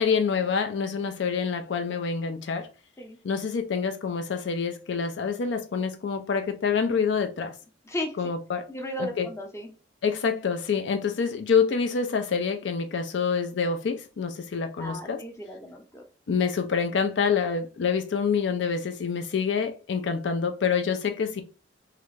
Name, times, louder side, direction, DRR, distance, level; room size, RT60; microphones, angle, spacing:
voice 1, 0.0-2.7 3.2-7.5 8.2-8.6 9.0-9.3 10.0-15.2 16.3-21.4, left 6 dB, 70° left, 0.4 m, -26 dB
voice 2, 8.7-9.7 14.8-16.0, equal, 15° left, 0.6 m, -35 dB
3.2 x 2.4 x 3.2 m
head